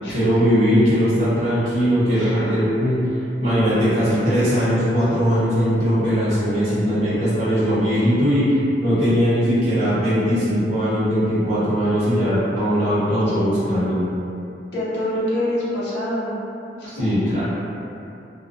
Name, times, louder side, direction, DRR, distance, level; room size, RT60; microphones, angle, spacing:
voice 1, 0.1-3.0 3.4-14.0 16.9-17.4, equal, 35° right, -12 dB, 0.8 m, -19 dB
voice 2, 2.1-2.4 13.1-13.4 14.7-16.4 16.7-17.1, left 1 dB, 75° left, -10 dB, 0.7 m, -26 dB
2.4 x 2.2 x 2.5 m, 2.7 s
head